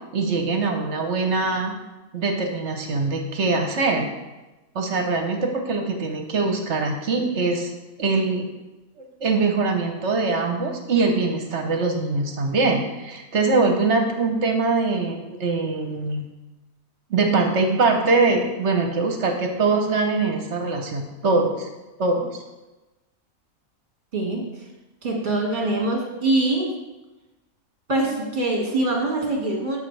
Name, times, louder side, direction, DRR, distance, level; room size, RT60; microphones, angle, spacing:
voice 1, 0.1-1.7 2.1-4.1 4.7-7.7 8.0-8.5 9.2-16.2 17.1-21.7 22.0-22.4, right 3 dB, 60° right, 4 dB, 1.1 m, -22 dB
voice 2, 24.1-24.4 25.0-26.7 27.9-29.8, right 2 dB, 35° right, -1 dB, 1.9 m, -23 dB
13.0 x 5.3 x 3.3 m, 1.1 s
omnidirectional pair, 1.4 m